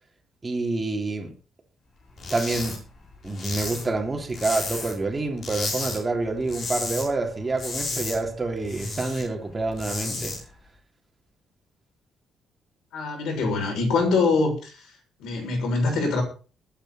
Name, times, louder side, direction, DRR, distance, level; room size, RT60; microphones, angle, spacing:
voice 1, 0.4-1.3 2.3-2.8 3.2-10.3, right 3 dB, 20° right, 3.1 m, -27 dB
sound 1, 2.2-2.8 3.0-5.1 5.4-6.0 6.3-7.1 7.4-9.2 9.6-10.4, left 3 dB, 45° left, 7.6 m, -32 dB
voice 2, 12.9-14.8 15.2-16.2, left 3 dB, 75° left, 6.7 m, -24 dB
21.0 x 9.1 x 4.4 m
cardioid pair, 145°, 0 cm